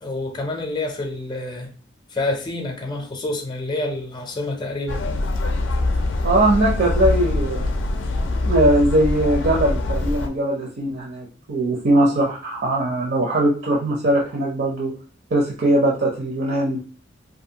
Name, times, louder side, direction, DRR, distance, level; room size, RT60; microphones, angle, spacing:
voice 1, 0.0-1.7 2.1-5.0, left 2 dB, 25° left, 3 dB, 0.5 m, -28 dB
sound 1, 4.9-10.3, left 2 dB, 75° left, 0.4 m, -23 dB
voice 2, 6.2-7.6 8.4-14.9 15.3-16.8, right 1 dB, 55° right, -1 dB, 0.5 m, -20 dB
2.6 x 2.4 x 2.7 m, 0.40 s
head